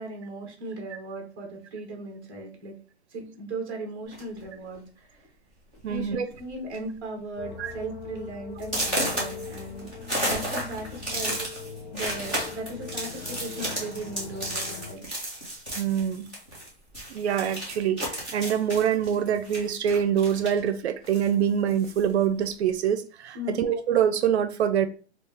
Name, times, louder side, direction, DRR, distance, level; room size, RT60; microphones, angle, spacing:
voice 1, 0.0-2.7 3.1-5.2 5.9-11.4 11.9-15.0 23.3-23.6, right 2 dB, 20° right, 2 dB, 0.8 m, -37 dB
sound 1, 4.1-4.4 5.2-5.3 5.7-6.0 6.3-6.8 7.2-7.3 7.8-7.9 8.6-16.7 16.9-20.7 21.0-22.1, right 1 dB, 10° left, 0.4 m, -33 dB
voice 2, 5.8-6.3 7.6-7.7 15.8-16.3 17.1-24.9, right 8 dB, 75° right, 9 dB, 0.5 m, -25 dB
sound 2, 7.4-15.0, left 5 dB, 65° left, 0.8 m, -41 dB
3.6 x 2.4 x 3.3 m, 0.38 s
hypercardioid pair, 175°, 33 cm